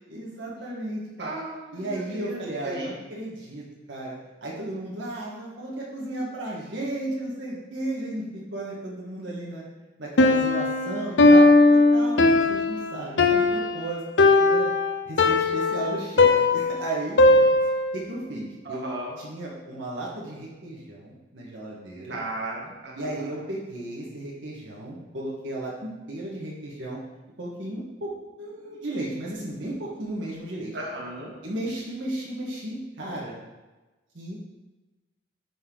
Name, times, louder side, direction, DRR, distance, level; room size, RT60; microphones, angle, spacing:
voice 1, 0.1-1.3 1.7-9.6 10.0-14.0 14.4-14.7 15.0-17.5 17.9-18.9 19.2-22.2 22.9-27.0 27.4-28.1 28.4-30.7 31.4-33.3 34.1-34.4, right 1 dB, 90° right, -5 dB, 1.7 m, -34 dB
voice 2, 1.2-2.9 18.7-19.1 22.1-23.3 30.7-31.3, right 2 dB, 65° right, -3 dB, 1.8 m, -35 dB
Piano, 10.2-18.0, left 2 dB, 70° left, 0.6 m, -19 dB
11.0 x 4.5 x 3.9 m, 1.1 s
head